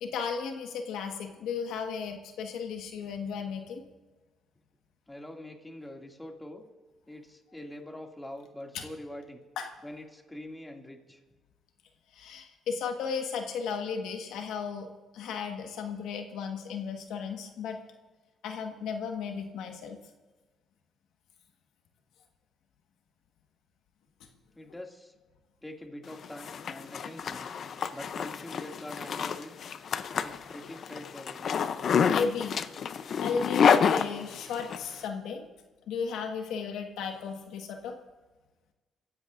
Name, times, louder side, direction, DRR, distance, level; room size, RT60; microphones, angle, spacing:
voice 1, 0.0-3.8 8.7-8.8 9.6-9.7 12.1-14.9 15.1-17.8 18.4-20.0 32.1-32.6 33.2-35.4 35.9-37.9, left 6 dB, 90° left, 3 dB, 1.6 m, -34 dB
voice 2, 5.1-6.6 7.1-9.4 9.8-11.2 24.5-25.1 25.6-27.5 27.9-29.5 30.2-31.5, left 1 dB, 10° left, 1 dB, 2.5 m, -44 dB
Zipper (clothing), 26.1-34.8, left 7 dB, 60° left, 0.7 m, -28 dB
27.5 x 15.5 x 2.6 m, 1.2 s
cardioid pair, 90°, 0 cm